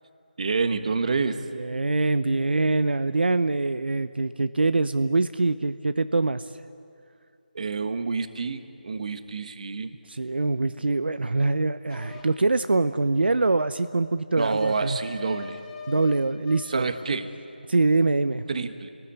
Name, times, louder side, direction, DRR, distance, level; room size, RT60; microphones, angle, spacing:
voice 1, 0.4-1.4 7.5-9.9 14.4-15.6 16.7-17.3 18.5-18.9, right 4 dB, 45° right, 9 dB, 1.5 m, -28 dB
voice 2, 1.5-6.5 10.1-15.0 15.9-16.8 17.7-18.4, right 3 dB, 75° right, 11 dB, 0.8 m, -24 dB
sound 1, 11.9-12.2 14.4-16.2 16.5-16.8, left 5 dB, 5° left, 1.9 m, -40 dB
29.5 x 19.5 x 8.3 m, 2.5 s
figure-of-eight pair, 170°, 5 cm